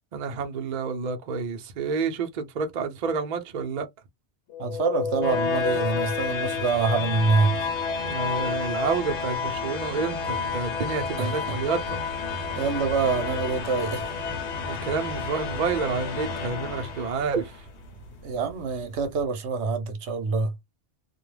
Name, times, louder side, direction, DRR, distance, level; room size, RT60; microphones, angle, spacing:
voice 1, 0.1-3.9 8.0-12.0 14.7-17.7, right 5 dB, 50° right, 0.6 m, -29 dB
sound 1, 4.5-17.5, left 5 dB, 75° left, 1.0 m, -30 dB
voice 2, 4.6-7.7 11.2-11.3 12.6-14.0 18.2-20.5, right 4 dB, 80° right, 0.9 m, -25 dB
sound 2, 11.7-19.3, right 1 dB, 50° left, 0.9 m, -48 dB
2.3 x 2.1 x 3.1 m
omnidirectional pair, 1.2 m